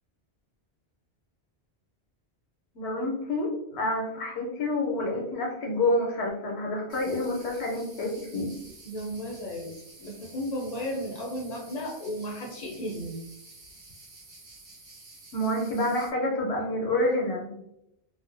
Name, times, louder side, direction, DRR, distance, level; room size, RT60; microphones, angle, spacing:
voice 1, 2.7-8.5 15.3-17.6, left 1 dB, 80° left, -1 dB, 0.8 m, -28 dB
sound 1, 6.9-16.1, right 2 dB, 85° right, 1.1 m, -50 dB
voice 2, 8.8-13.2, equal, 50° left, -1 dB, 0.5 m, -34 dB
2.4 x 2.1 x 2.5 m, 0.82 s
omnidirectional pair, 1.1 m